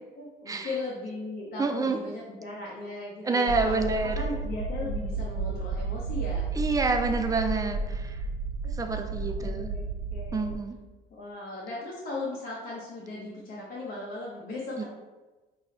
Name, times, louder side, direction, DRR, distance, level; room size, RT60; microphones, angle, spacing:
voice 1, 0.1-6.5 8.6-10.5 11.1-14.8, left 2 dB, 60° left, -4 dB, 0.8 m, -38 dB
voice 2, 1.6-2.0 3.3-4.2 6.6-8.1 8.8-9.7 10.3-10.8 14.8-14.9, right 4 dB, 20° right, 5 dB, 0.4 m, -27 dB
sound 1, 3.5-10.6, right 3 dB, 80° right, 0.7 m, -32 dB
5.4 x 2.1 x 4.1 m, 1.2 s
cardioid pair, 110°, 17 cm